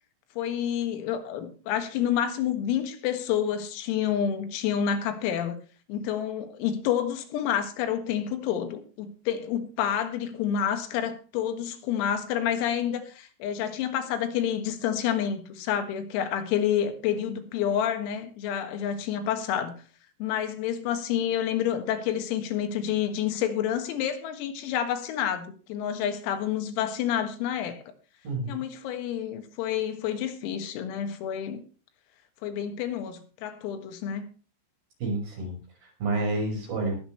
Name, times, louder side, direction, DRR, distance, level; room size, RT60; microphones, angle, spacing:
voice 1, 0.4-5.6 5.9-19.7 20.2-27.8 28.5-31.6 32.4-34.3, left 9 dB, 85° left, 4.3 m, -29 dB
voice 2, 28.2-28.6 35.0-35.6 35.8-37.0, right 2 dB, 45° right, 7.2 m, -29 dB
20.5 x 9.0 x 3.2 m
omnidirectional pair, 6.0 m